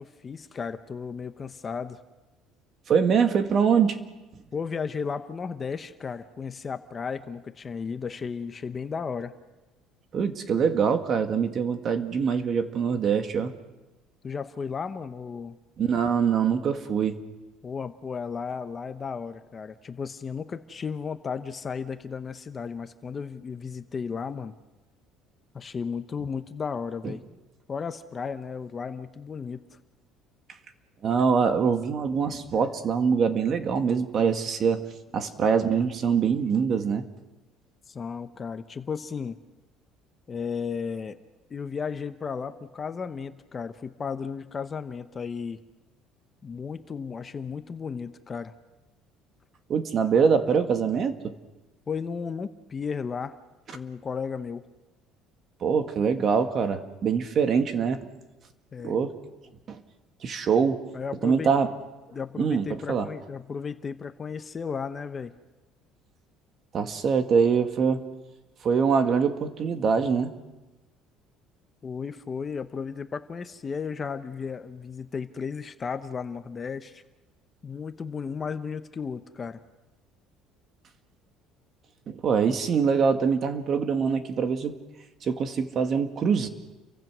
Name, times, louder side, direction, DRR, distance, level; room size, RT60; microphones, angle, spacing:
voice 1, 0.0-2.0 4.5-9.3 14.2-15.6 17.6-24.5 25.5-27.2 27.7-29.6 37.9-39.4 40.3-41.2 41.5-45.6 46.4-48.5 51.9-53.4 53.7-54.6 58.7-58.9 60.9-61.5 62.1-65.3 71.8-77.0 77.6-79.6, left 6 dB, 25° left, 9 dB, 0.9 m, -34 dB
voice 2, 2.9-4.0 10.1-13.5 15.8-17.2 27.0-27.1 31.0-37.0 49.7-51.3 55.6-58.1 58.8-59.1 59.7-59.8 60.2-60.8 61.2-61.7 62.4-63.1 66.7-68.0 68.6-70.3 82.1-84.7 85.2-86.5, right 6 dB, 35° right, 7 dB, 1.9 m, -24 dB
30.0 x 24.0 x 6.2 m, 1.1 s
cardioid pair, 155°, 0 cm